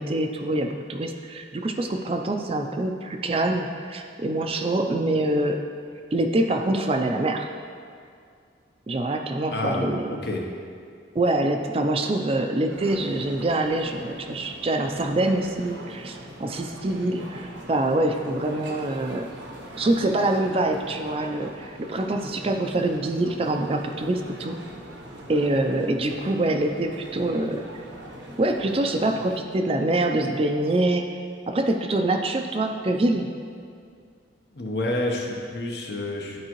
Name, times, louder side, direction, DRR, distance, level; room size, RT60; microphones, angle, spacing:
voice 1, 0.0-5.6 6.1-7.5 8.9-10.2 11.1-19.3 19.8-24.6 25.3-27.6 28.4-31.1 31.5-33.3, right 2 dB, 30° right, 4 dB, 0.4 m, -25 dB
voice 2, 9.5-10.5 34.5-36.4, left 1 dB, 60° left, 0 dB, 0.9 m, -29 dB
sound 1, 12.7-29.4, right 1 dB, 80° right, 0.9 m, -42 dB
11.5 x 4.7 x 3.0 m, 2.3 s
head